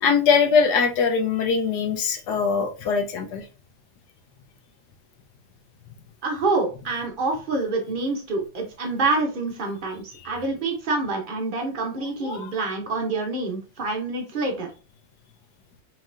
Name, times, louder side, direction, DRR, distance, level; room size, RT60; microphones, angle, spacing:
voice 1, 0.0-3.5 12.2-12.5, left 5 dB, 70° left, 5 dB, 1.1 m, -22 dB
voice 2, 6.2-14.7, right 3 dB, 80° right, 1 dB, 0.4 m, -27 dB
4.5 x 3.1 x 2.4 m, 0.34 s
omnidirectional pair, 2.0 m